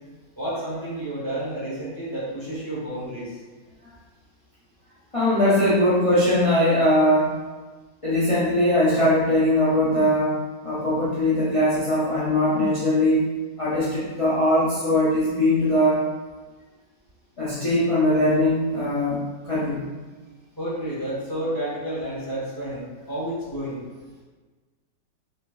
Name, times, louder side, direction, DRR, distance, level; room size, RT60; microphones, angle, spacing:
voice 1, 0.4-3.4 20.6-23.8, right 1 dB, 15° left, -8 dB, 1.0 m, -30 dB
voice 2, 5.1-7.3 8.0-10.3 10.6-13.3 13.6-16.0 17.4-19.9, left 1 dB, 40° left, -10 dB, 0.4 m, -21 dB
3.9 x 3.9 x 2.5 m, 1.3 s
omnidirectional pair, 1.9 m